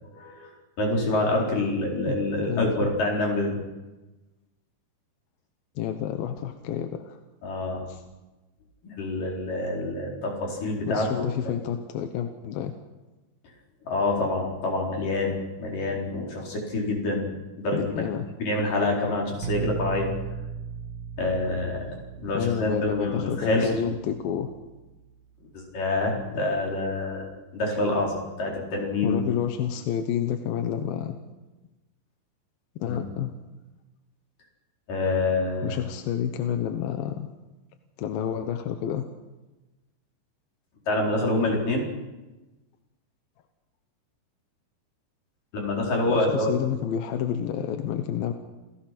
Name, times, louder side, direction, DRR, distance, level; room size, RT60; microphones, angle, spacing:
voice 1, 0.1-3.6 7.4-7.9 8.8-11.6 13.8-18.0 18.4-20.1 21.2-22.0 22.2-23.8 25.5-29.2 32.9-33.0 34.9-35.8 40.9-41.9 45.5-46.6, left 2 dB, 65° left, -1 dB, 6.0 m, -27 dB
voice 2, 2.1-2.9 5.8-7.2 7.9-8.0 10.9-12.7 17.7-18.2 22.3-24.5 29.0-31.2 32.8-33.3 35.6-37.3 38.0-39.1 46.1-48.3, left 9 dB, 80° left, 7 dB, 2.8 m, -29 dB
sound 1, 19.4-25.2, right 6 dB, 60° right, 3.2 m, -37 dB
29.0 x 17.0 x 6.0 m, 1.1 s
omnidirectional pair, 4.1 m